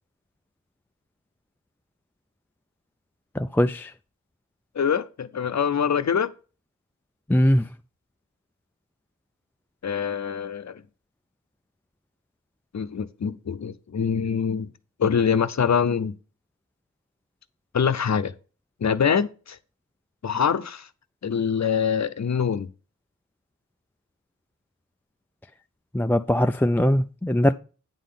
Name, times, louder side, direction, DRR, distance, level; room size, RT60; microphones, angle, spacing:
voice 1, 3.4-3.9 7.3-7.6 25.9-27.5, left 1 dB, 5° left, 0.4 m, -21 dB
voice 2, 4.7-6.3 9.8-10.8 12.7-14.7 15.0-16.1 17.7-18.3 18.8-19.6 20.2-20.9 21.2-22.7, left 7 dB, 55° left, 0.7 m, -24 dB
9.2 x 3.8 x 6.8 m
wide cardioid pair, 55°, 32 cm